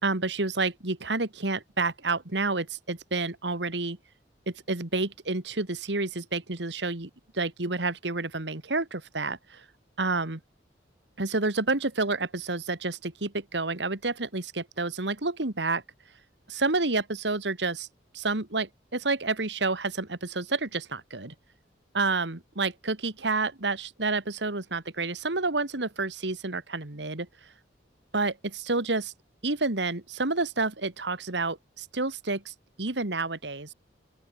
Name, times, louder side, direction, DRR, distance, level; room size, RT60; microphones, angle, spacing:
voice 1, 0.0-4.0 4.5-7.1 7.3-9.6 10.0-10.4 11.2-15.8 16.5-17.9 18.1-21.3 21.9-27.3 28.1-29.1 29.4-33.7, right 3 dB, 75° right, 2.3 m, -29 dB
open air
head